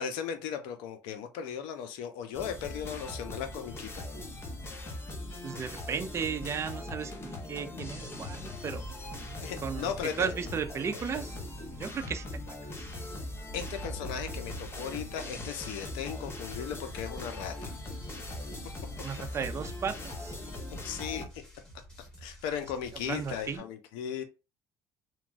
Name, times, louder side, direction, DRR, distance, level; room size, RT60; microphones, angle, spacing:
voice 1, 0.0-4.0 9.4-10.3 13.5-17.7 20.8-21.4 22.2-24.2, left 8 dB, 85° left, 0.5 m, -37 dB
sound 1, 2.3-21.3, left 2 dB, 30° left, 0.7 m, -40 dB
voice 2, 5.4-8.8 9.6-9.9 10.2-11.3 11.8-12.3 19.0-20.3 23.0-23.6, right 6 dB, 35° right, 0.4 m, -35 dB
sound 2, 8.8-19.5, right 2 dB, 45° left, 1.4 m, -49 dB
sound 3, 15.8-23.6, right 1 dB, 10° left, 1.2 m, -52 dB
2.9 x 2.2 x 2.5 m
supercardioid pair, 85°, 8 cm